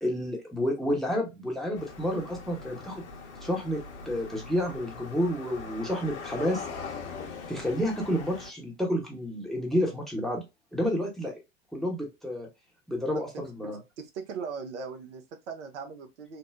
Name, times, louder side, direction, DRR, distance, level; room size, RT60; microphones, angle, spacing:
voice 1, 0.0-3.0 3.4-6.6 7.5-10.4 10.7-11.4 11.7-12.5 12.9-13.8, equal, ahead, 0.8 m, -30 dB
sound 1, 1.7-8.5, left 4 dB, 60° left, 0.8 m, -41 dB
voice 2, 14.0-16.4, right 5 dB, 65° right, 0.7 m, -39 dB
3.4 x 2.0 x 2.4 m
figure-of-eight pair, 85°, 38 cm